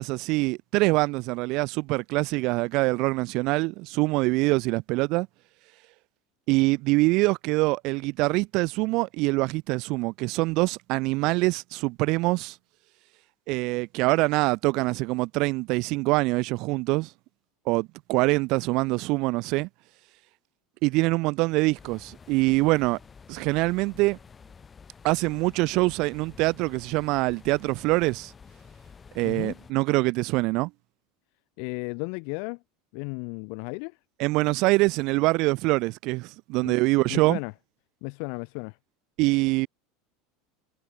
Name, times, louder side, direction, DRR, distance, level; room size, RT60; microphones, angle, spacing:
voice 1, 0.0-5.3 6.5-12.6 13.5-17.1 17.7-19.7 20.8-23.0 23.3-24.2 25.0-28.3 29.2-30.7 34.2-37.4 39.2-39.7, right 23 dB, 60° right, 0.4 m, -24 dB
sound 1, 21.8-29.7, left 6 dB, 25° left, 3.7 m, -50 dB
voice 2, 29.2-29.6 31.6-32.6 32.9-34.0 36.6-36.8 37.1-37.5 38.0-38.8, left 40 dB or more, 65° left, 0.9 m, -34 dB
hypercardioid pair, 100°, 0 cm